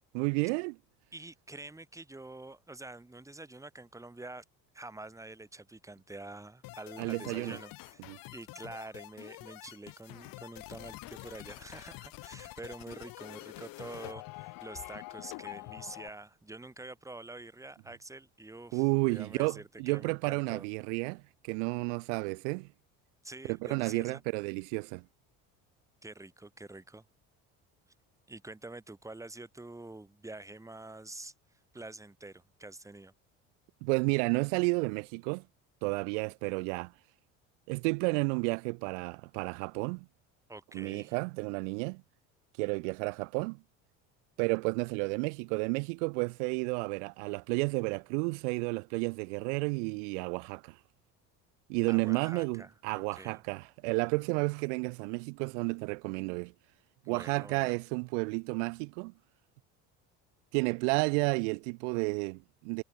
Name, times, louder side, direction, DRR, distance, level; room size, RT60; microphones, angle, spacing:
voice 1, 0.1-0.7 7.0-7.6 8.1-8.2 18.7-22.7 23.5-25.0 33.8-35.4 35.8-36.9 37.7-40.1 40.7-42.0 42.6-43.6 44.4-50.7 51.7-56.5 57.1-59.1 60.5-62.8, right 33 dB, 85° right, 0.7 m, -31 dB
voice 2, 1.1-4.4 4.7-8.0 8.3-20.6 23.2-24.2 26.0-27.0 28.3-31.3 31.7-33.1 40.5-41.1 51.9-53.4 57.0-57.7, right 2 dB, 10° right, 1.6 m, -47 dB
sound 1, 6.6-16.1, left 21 dB, 70° left, 1.6 m, -47 dB
supercardioid pair, 85°, 35 cm